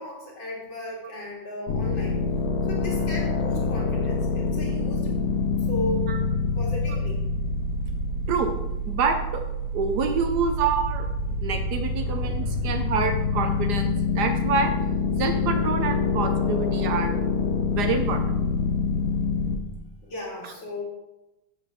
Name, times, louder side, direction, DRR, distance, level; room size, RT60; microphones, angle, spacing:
voice 1, 0.0-2.2 2.7-5.2 5.7-6.1 6.6-7.2 11.8-11.9 12.4-12.8 20.0-20.8, equal, 75° left, -3 dB, 3.0 m, -35 dB
sound 1, 1.7-19.6, left 4 dB, 60° left, 1.1 m, -26 dB
voice 2, 8.9-9.4 9.7-14.7 15.2-17.2 17.7-18.3, right 5 dB, 65° right, 6 dB, 1.1 m, -27 dB
7.8 x 4.1 x 6.7 m, 0.98 s
omnidirectional pair, 2.1 m